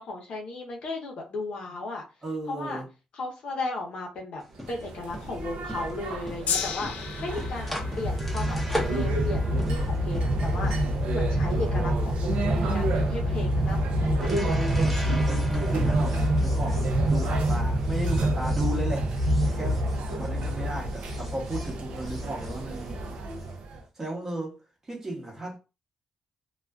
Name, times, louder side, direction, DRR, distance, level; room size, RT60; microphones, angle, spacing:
voice 1, 0.0-2.0 2.5-2.8 3.1-4.4 4.7-6.9 7.2-14.6, left 2 dB, 60° left, 0.7 m, -35 dB
voice 2, 2.2-2.9 14.8-19.1 19.4-19.8 20.2-23.1 24.0-24.6 24.9-25.6, right 1 dB, 25° right, 0.8 m, -35 dB
sound 1, 4.4-20.6 20.9-23.5, equal, 5° left, 0.6 m, -40 dB
sound 2, 4.6-23.8, right 1 dB, 70° right, 0.4 m, -27 dB
Gong, 6.5-12.8 13.6-13.7, left 6 dB, 75° left, 0.4 m, -37 dB
2.4 x 2.3 x 2.3 m
cardioid pair, 125°, 2 cm